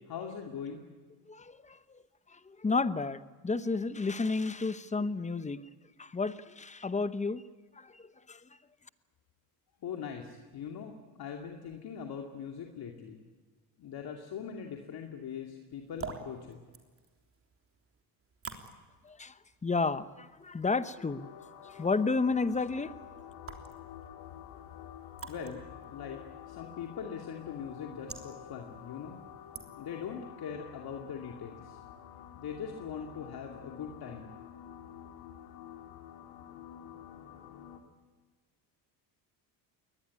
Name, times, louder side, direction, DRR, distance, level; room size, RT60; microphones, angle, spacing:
voice 1, 0.1-0.9 9.8-13.2 13.8-16.6 25.2-26.2 26.5-29.2 29.7-31.8 32.4-34.4, left 7 dB, 50° left, 2 dB, 2.5 m, -41 dB
voice 2, 1.3-1.8 2.3-5.6 6.0-7.4 7.8-8.0 8.3-8.4 19.0-19.3 19.6-21.3 21.6-22.9, left 4 dB, 15° left, 14 dB, 0.9 m, -31 dB
sound 1, 15.7-30.1, right 5 dB, 30° right, 3.4 m, -51 dB
sound 2, 21.0-37.8, left 10 dB, 90° left, 3.1 m, -49 dB
22.0 x 19.0 x 9.7 m, 1.4 s
cardioid pair, 110°, 47 cm